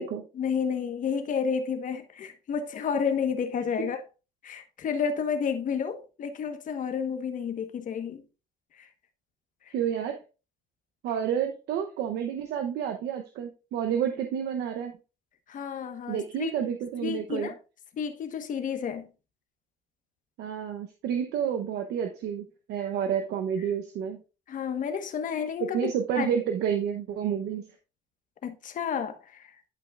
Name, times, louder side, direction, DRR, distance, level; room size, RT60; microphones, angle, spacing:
voice 1, 0.4-4.0 4.4-8.2 8.8-8.9 15.5-16.7 17.0-17.5 18.0-19.1 24.5-25.9 26.1-26.3 28.4-29.2, left 6 dB, 50° left, 1.3 m, -30 dB
voice 2, 9.7-10.2 11.0-14.9 16.1-17.5 20.4-24.2 25.6-27.6, right 8 dB, 80° right, 0.9 m, -30 dB
11.5 x 5.4 x 2.4 m
cardioid pair, 110°, 17 cm